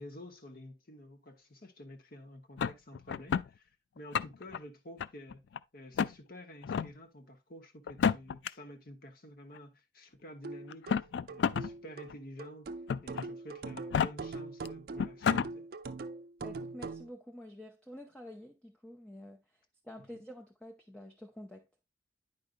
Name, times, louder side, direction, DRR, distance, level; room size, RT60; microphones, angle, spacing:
voice 1, 0.0-5.4 5.7-12.7 13.0-15.7 20.1-20.2, equal, 55° left, 1.1 m, -50 dB
sound 1, 2.6-3.5 4.0-4.6 5.0-5.6 6.0-6.1 6.6-6.9 7.9-8.5 9.6-9.7 10.7-11.7 12.1-12.2 12.9-13.3 13.8-14.1 14.7-14.8 15.0-15.5, left 7 dB, 75° left, 0.3 m, -30 dB
sound 2, 10.4-17.1, right 3 dB, 55° right, 0.5 m, -42 dB
voice 2, 16.4-19.4 19.8-21.7, left 1 dB, 5° left, 0.6 m, -48 dB
9.4 x 5.1 x 2.5 m
head